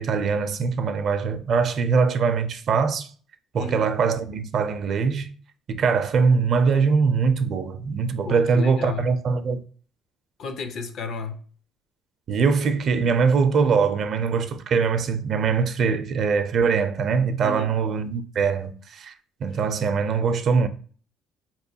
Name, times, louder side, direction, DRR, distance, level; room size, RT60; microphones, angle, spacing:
voice 1, 0.0-3.1 3.5-5.3 5.7-9.6 12.3-19.1 19.4-20.7, right 5 dB, 55° right, 0.5 m, -22 dB
voice 2, 3.5-3.9 8.2-9.1 10.4-11.4 17.4-17.7 19.5-19.6, left 4 dB, 60° left, 0.6 m, -33 dB
4.2 x 3.0 x 2.7 m
supercardioid pair, 85°, 0 cm